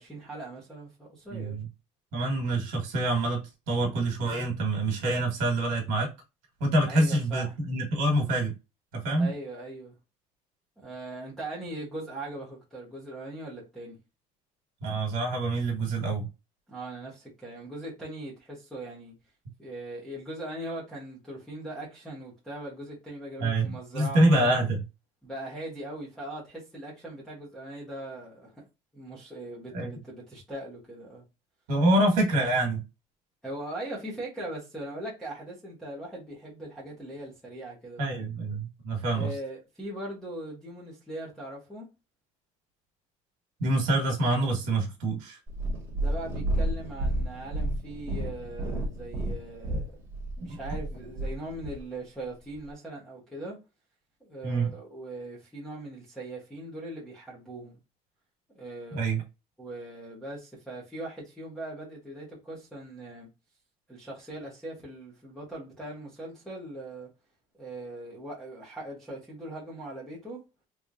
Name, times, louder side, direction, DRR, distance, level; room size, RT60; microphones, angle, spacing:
voice 1, 0.0-1.6 6.9-7.5 9.2-10.0 10.8-14.0 16.7-19.1 19.6-24.6 25.2-28.6 28.9-31.2 33.4-38.2 39.1-41.9 46.0-49.9 50.4-53.6 54.2-57.8 58.5-59.1 59.6-63.3 63.9-67.1 67.6-70.4, right 1 dB, 5° left, 1.0 m, -40 dB
voice 2, 1.3-1.7 2.1-3.4 3.7-6.1 6.6-8.5 8.9-9.3 14.8-16.3 23.4-24.8 29.7-29.9 31.7-32.8 38.0-39.3 43.6-45.4 50.5-50.6 54.4-54.7 58.9-59.2, right 2 dB, 65° right, 1.5 m, -26 dB
Purr, 45.5-51.8 52.5-52.6, right 1 dB, 15° right, 1.1 m, -31 dB
3.5 x 3.2 x 2.5 m
cardioid pair, 175°, 15 cm